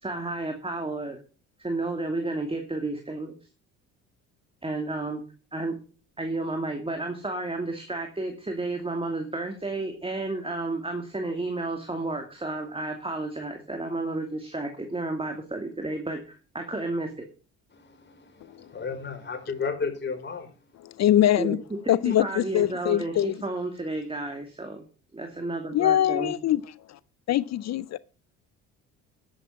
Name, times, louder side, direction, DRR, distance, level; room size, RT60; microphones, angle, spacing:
voice 1, 0.0-1.2 1.6-3.4 4.6-5.2 5.5-5.7 6.2-17.3 21.4-21.6 21.8-21.9 22.2-24.8 25.1-26.3, right 2 dB, 15° right, 2.6 m, -32 dB
voice 2, 17.7-20.5, left 5 dB, 30° left, 4.7 m, -33 dB
voice 3, 20.8-21.6 21.9-23.4 25.7-26.6 26.9-27.0 27.3-28.0, left 12 dB, 45° left, 0.6 m, -23 dB
11.0 x 8.4 x 5.8 m
hypercardioid pair, 60°, 36 cm